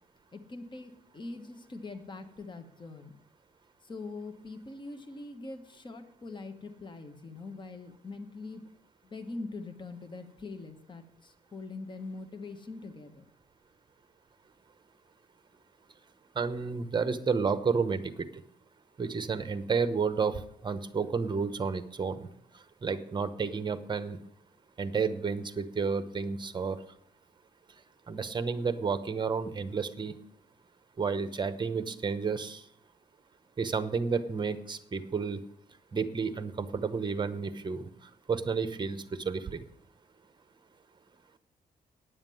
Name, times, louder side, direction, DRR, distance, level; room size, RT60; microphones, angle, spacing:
voice 1, 0.3-3.1 3.8-8.6 9.0-13.2, left 3 dB, 30° left, 8 dB, 1.1 m, -43 dB
voice 2, 16.4-18.3 19.0-22.3 22.8-24.2 24.8-26.8 28.1-30.1 31.0-32.6 33.6-35.4 35.9-37.9 38.3-39.6, right 5 dB, 30° right, 12 dB, 0.9 m, -31 dB
9.8 x 7.4 x 7.6 m, 0.70 s
cardioid pair, 115°, 16 cm